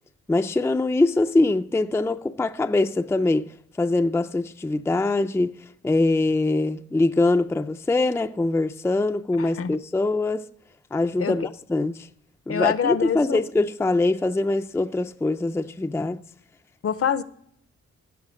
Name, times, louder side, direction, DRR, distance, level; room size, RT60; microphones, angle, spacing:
voice 1, 0.3-3.5 3.8-5.5 5.8-10.4 10.9-12.1 12.5-16.2, left 2 dB, 10° left, 0.4 m, -23 dB
voice 2, 9.4-9.8 11.2-11.3 12.5-13.4 16.8-17.2, left 8 dB, 50° left, 0.6 m, -25 dB
16.0 x 5.6 x 6.2 m
wide cardioid pair, 135°, 29 cm